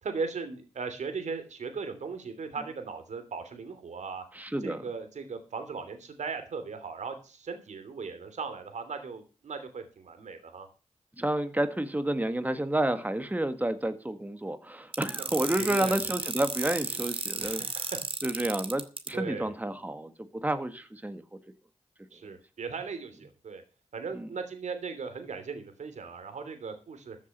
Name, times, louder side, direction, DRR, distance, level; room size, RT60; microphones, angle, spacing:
voice 1, 0.0-4.2 4.6-10.7 15.1-15.2 15.6-16.0 17.4-18.0 19.1-19.5 22.1-23.6 23.9-27.2, right 5 dB, 90° right, 8 dB, 3.0 m, -38 dB
voice 2, 4.4-4.8 11.2-17.7 18.2-20.1 20.4-21.2 22.2-22.3 24.2-24.3, right 1 dB, 15° right, 9 dB, 1.7 m, -30 dB
sound 1, 14.9-19.1, right 4 dB, 50° right, 2.2 m, -33 dB
14.5 x 7.4 x 6.7 m, 0.32 s
cardioid pair, 65°, 12 cm